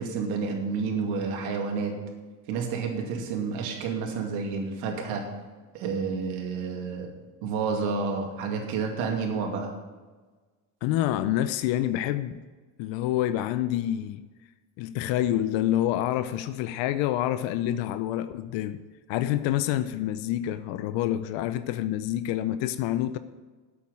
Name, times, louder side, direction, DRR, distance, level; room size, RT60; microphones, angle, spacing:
voice 1, 0.0-1.9 2.5-5.3 5.7-7.1 7.4-9.7, right 5 dB, 85° right, 2.5 m, -30 dB
voice 2, 10.8-12.3 12.8-14.2 14.8-18.8 19.1-23.2, left 12 dB, 75° left, 0.7 m, -27 dB
8.6 x 7.6 x 8.8 m
cardioid pair, 110°, 45 cm